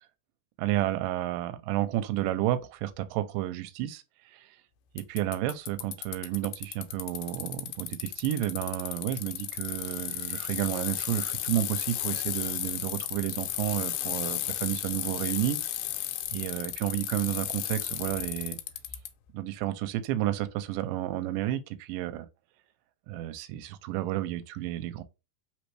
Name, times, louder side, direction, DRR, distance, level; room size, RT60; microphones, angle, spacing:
voice 1, 0.6-4.0 4.3-4.5 5.0-15.6 16.3-18.6 19.3-22.3 23.1-25.0, right 14 dB, 80° right, 2.1 m, -31 dB
Bicycle, 5.0-19.1, left 13 dB, 90° left, 2.4 m, -34 dB
5.2 x 3.1 x 3.1 m
omnidirectional pair, 4.2 m